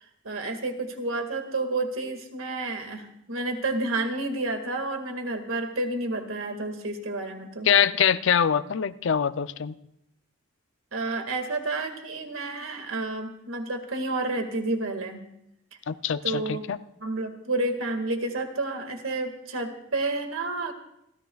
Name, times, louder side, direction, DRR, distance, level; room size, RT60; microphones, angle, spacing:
voice 1, 0.2-7.7 10.9-15.2 16.2-16.6 17.0-20.7, right 2 dB, 85° right, 5 dB, 1.9 m, -30 dB
voice 2, 7.7-9.7 15.9-16.8, left 8 dB, 65° left, 13 dB, 0.5 m, -23 dB
29.0 x 14.0 x 2.4 m, 0.77 s
head